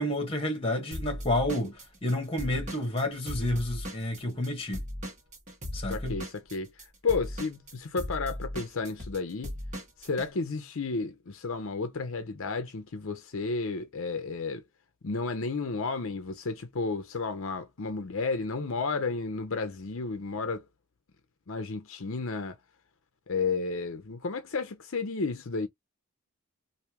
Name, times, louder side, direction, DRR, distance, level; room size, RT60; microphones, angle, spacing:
voice 1, 0.0-4.8 5.7-6.2, left 1 dB, 25° left, 1.3 m, -30 dB
Drum kit / Drum, 0.9-4.5 4.7-10.3, equal, 35° right, 1.5 m, -37 dB
voice 2, 5.9-6.7 7.0-9.6 10.0-14.6 15.0-20.6 21.5-22.6 23.3-25.7, left 4 dB, 65° left, 0.6 m, -32 dB
3.3 x 2.6 x 2.9 m
head